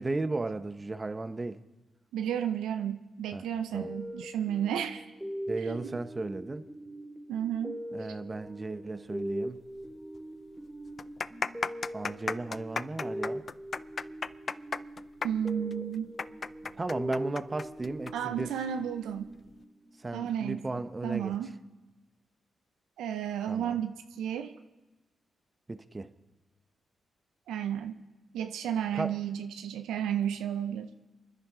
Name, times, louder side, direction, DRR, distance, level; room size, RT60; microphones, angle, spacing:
voice 1, 0.0-1.6 3.3-3.5 3.7-3.9 5.5-6.7 7.9-9.6 11.9-13.4 16.7-18.6 20.0-21.4 23.5-23.8 25.7-26.1 28.9-29.2, right 2 dB, 30° right, 10 dB, 1.0 m, -35 dB
voice 2, 2.1-5.0 5.6-6.0 7.3-7.8 15.2-16.1 18.1-19.3 20.1-20.6 21.0-21.5 23.0-24.5 27.5-28.0 28.3-30.9, right 9 dB, 90° right, 8 dB, 0.5 m, -32 dB
sound 1, 3.7-20.1, equal, 5° right, 2.7 m, -41 dB
sound 2, 9.8-9.9 10.1-10.2 10.9-18.1 18.4-18.5 19.3-19.5, left 5 dB, 50° left, 0.4 m, -34 dB
28.5 x 10.5 x 3.8 m, 1.1 s
supercardioid pair, 50°, 0 cm